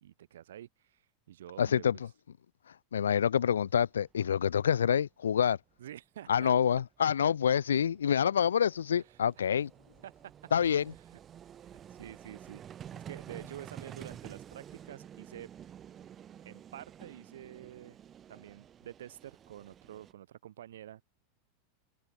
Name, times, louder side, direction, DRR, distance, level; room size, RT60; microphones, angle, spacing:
voice 1, 0.0-1.8 5.8-6.5 9.0-9.1 9.4-9.5 10.0-10.1 11.9-12.6 12.9-15.5 16.4-18.0 18.3-21.0, right 11 dB, 75° right, 3.3 m, -48 dB
voice 2, 1.6-2.1 2.7-5.6 6.3-9.7 10.5-10.9, left 8 dB, 80° left, 0.8 m, -27 dB
Vehicle, 4.0-4.1 4.3-4.5 6.5-6.6 6.7-20.1, right 9 dB, 30° right, 4.0 m, -50 dB
hypercardioid pair, 95°, 0 cm